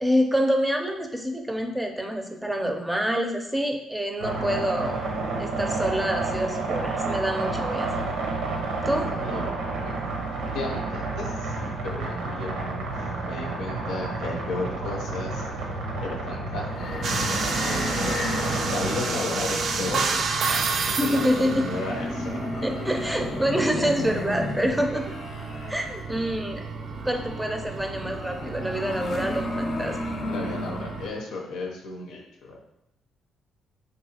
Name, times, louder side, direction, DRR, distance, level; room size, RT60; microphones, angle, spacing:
voice 1, 0.0-5.0 5.4-7.9 8.9-9.1 21.0-21.7 22.6-25.1 25.7-26.6 27.0-30.0, equal, 5° right, 3 dB, 0.5 m, -26 dB
sound 1, 4.2-19.0, right 3 dB, 85° right, 0.7 m, -30 dB
voice 2, 8.9-9.5 9.8-9.9 10.5-12.8 13.2-15.4 16.0-17.0 17.6-18.2 18.7-22.5 26.1-26.3 30.2-32.6, left 2 dB, 90° left, 0 dB, 0.7 m, -34 dB
sound 2, 16.7-31.2, left 2 dB, 50° left, 0.6 m, -33 dB
sound 3, 17.0-31.1, right 5 dB, 65° right, 0.3 m, -32 dB
4.7 x 2.7 x 2.8 m, 0.83 s
cardioid pair, 90°, 0 cm